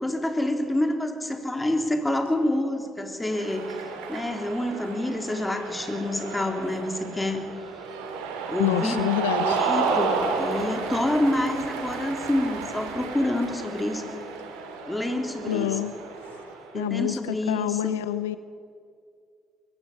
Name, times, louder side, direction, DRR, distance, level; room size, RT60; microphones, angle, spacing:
voice 1, 0.0-3.8 4.1-7.5 8.5-9.0 9.3-14.0 14.8-15.7 16.7-18.0, left 1 dB, 15° left, 4 dB, 3.5 m, -27 dB
Cheering, 3.3-16.7, right 4 dB, 75° right, 2.8 m, -32 dB
voice 2, 8.6-9.6 15.5-15.9 16.3-16.4 16.7-18.4, left 13 dB, 80° left, 15 dB, 0.5 m, -27 dB
22.5 x 15.5 x 8.5 m, 2.3 s
hypercardioid pair, 45°, 0 cm